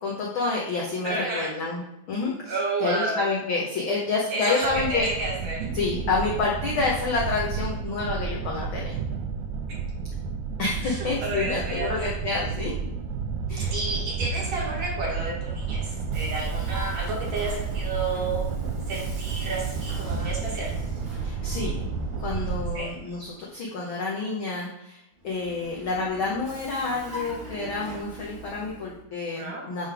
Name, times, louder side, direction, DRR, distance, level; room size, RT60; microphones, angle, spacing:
voice 1, 0.0-1.8 2.1-5.1 5.7-8.9 10.6-12.7 13.5-13.7 21.2-21.8 22.2-29.9, left 3 dB, 85° left, -3 dB, 1.1 m, -28 dB
voice 2, 1.0-1.5 2.5-3.3 4.3-5.6 10.8-12.1 13.7-18.4 18.9-20.7 22.7-22.9 29.4-29.6, right 2 dB, 55° right, -5 dB, 2.8 m, -31 dB
sound 1, 4.6-22.8, right 5 dB, 85° right, 1.5 m, -31 dB
Vehicle, 15.0-23.5 25.1-29.0, right 1 dB, 35° right, 0.9 m, -43 dB
10.0 x 3.4 x 3.4 m, 0.86 s
omnidirectional pair, 3.5 m